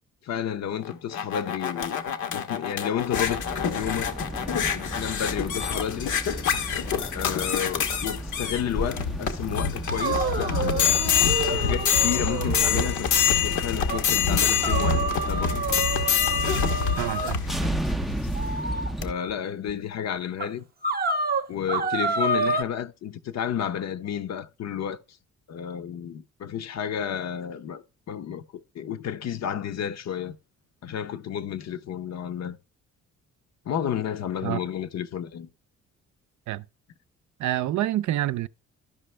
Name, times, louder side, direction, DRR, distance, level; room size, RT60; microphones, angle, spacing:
voice 1, 0.2-2.0 2.3-3.4 3.7-4.1 4.7-6.1 7.1-11.1 11.5-15.7 19.0-20.7 21.5-25.0 25.5-30.4 30.8-32.6 33.7-35.5, left 9 dB, 60° left, 0.8 m, -31 dB
sound 1, 0.8-18.5 19.0-19.1, left 7 dB, 75° left, 1.1 m, -26 dB
sound 2, 3.1-19.1, right 1 dB, ahead, 0.4 m, -35 dB
sound 3, 9.9-12.9 13.3-13.4 13.9-14.0 14.6-17.4 18.3-18.9 19.7-19.8 20.4-20.5 20.8-22.6, right 3 dB, 30° right, 0.7 m, -28 dB
voice 2, 17.0-17.7 34.4-34.6 36.5-36.6 37.4-38.5, right 13 dB, 70° right, 0.5 m, -28 dB
12.5 x 5.2 x 3.2 m
cardioid pair, 90°, 30 cm